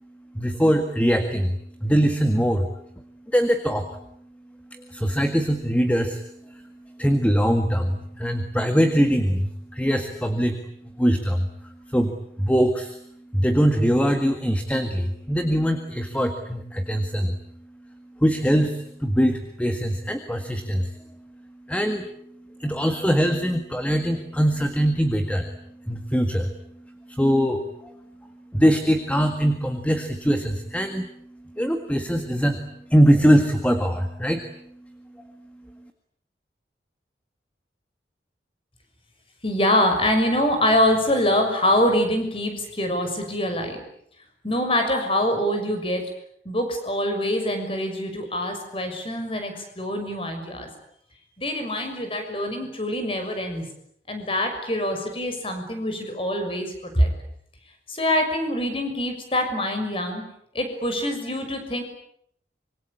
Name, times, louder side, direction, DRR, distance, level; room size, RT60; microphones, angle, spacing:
voice 1, 0.3-2.7 3.3-4.0 4.7-17.4 17.8-35.9, equal, 10° left, 6 dB, 1.8 m, -23 dB
voice 2, 39.4-43.8 44.4-46.0 46.4-50.7 51.4-53.7 54.1-57.1 57.9-60.3 60.5-61.8, left 1 dB, 30° left, 5 dB, 6.4 m, -24 dB
26.0 x 24.5 x 8.7 m, 0.70 s
head